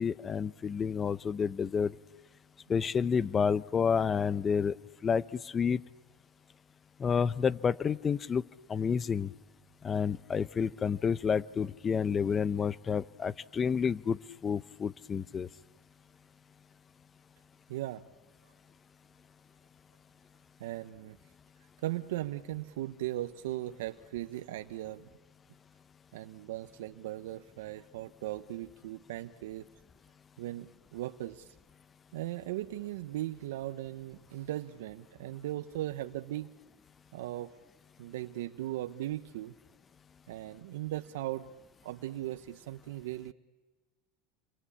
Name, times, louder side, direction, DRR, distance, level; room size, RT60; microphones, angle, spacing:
voice 1, 0.0-1.9 2.7-4.8 5.0-5.8 7.0-8.4 8.7-9.3 9.8-15.5, left 6 dB, 25° left, 18 dB, 0.8 m, -29 dB
voice 2, 17.7-18.0 20.6-21.2 21.8-25.1 26.1-29.7 30.4-31.6 32.1-36.5 37.1-37.5 38.0-39.6 40.3-41.5 41.8-43.3, right 14 dB, 80° right, 9 dB, 0.9 m, -38 dB
28.0 x 24.0 x 8.6 m, 1.3 s
supercardioid pair, 125°, 0 cm